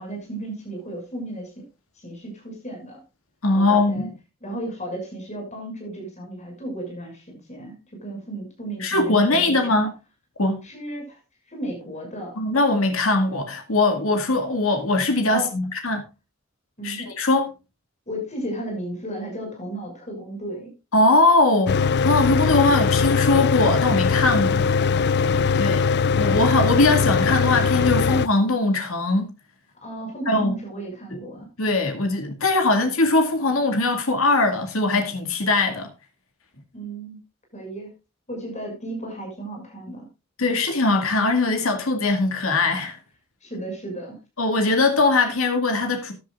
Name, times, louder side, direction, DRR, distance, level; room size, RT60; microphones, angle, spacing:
voice 1, 0.0-1.6 2.0-3.0 3.5-4.1 4.4-9.8 10.6-11.2 11.5-12.5 15.3-15.5 16.8-17.1 18.1-20.7 24.4-24.7 29.8-31.5 36.7-37.2 37.5-37.9 38.3-40.1 43.4-44.2, right 1 dB, 35° left, 6.4 m, -34 dB
voice 2, 3.4-4.1 8.8-9.9 10.4-10.6 12.4-16.0 16.8-17.5 20.9-24.5 25.6-25.8 26.2-29.3 30.3-30.6 31.6-35.9 40.4-43.0 44.4-46.1, left 2 dB, 85° left, 2.3 m, -21 dB
Mechanical fan, 21.7-28.3, left 5 dB, 50° left, 0.4 m, -21 dB
14.5 x 10.5 x 2.5 m
head